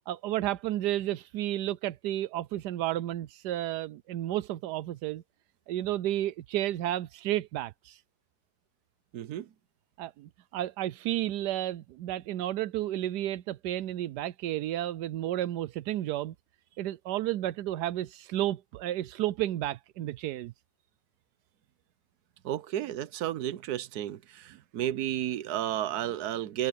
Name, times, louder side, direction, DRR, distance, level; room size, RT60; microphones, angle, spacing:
voice 1, 0.1-5.2 5.7-8.0 10.0-16.3 16.8-20.5, right 13 dB, 85° right, 1.2 m, -32 dB
voice 2, 9.1-9.5 22.4-26.7, right 12 dB, 70° right, 1.3 m, -32 dB
open air
omnidirectional pair, 1.7 m